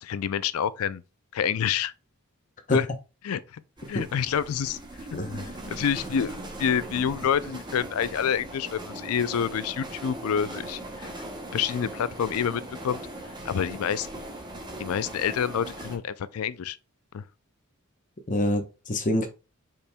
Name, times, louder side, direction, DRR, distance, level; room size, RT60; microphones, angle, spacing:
voice 1, 0.0-1.0 1.3-1.9 2.7-2.9 3.2-3.6 3.9-4.8 5.1-5.2 5.7-11.1 11.5-13.0 13.4-14.1 14.8-16.8 17.1-17.2, left 8 dB, 80° left, 0.4 m, -28 dB
sound 1, 3.8-16.0, right 1 dB, 20° right, 0.8 m, -39 dB
voice 2, 5.1-5.5 18.3-19.3, left 1 dB, 35° left, 0.8 m, -26 dB
5.2 x 4.4 x 2.2 m
head